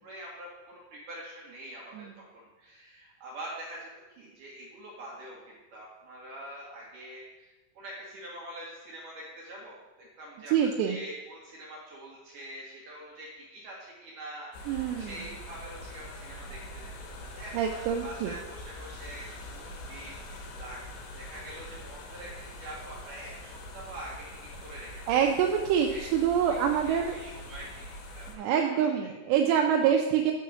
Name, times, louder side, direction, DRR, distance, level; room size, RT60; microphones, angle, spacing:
voice 1, 0.0-20.8 21.2-25.2 25.9-26.1 26.3-26.6 26.8-28.8 29.0-29.1 29.4-29.5, right 1 dB, 60° right, -4 dB, 2.2 m, -45 dB
voice 2, 10.5-11.0 14.7-15.1 17.5-18.3 25.1-27.2 28.4-30.3, right 8 dB, 80° right, 2 dB, 2.5 m, -26 dB
sound 1, 14.5-28.3, left 1 dB, 70° left, 3.1 m, -44 dB
9.5 x 4.7 x 6.2 m, 1.1 s
omnidirectional pair, 5.4 m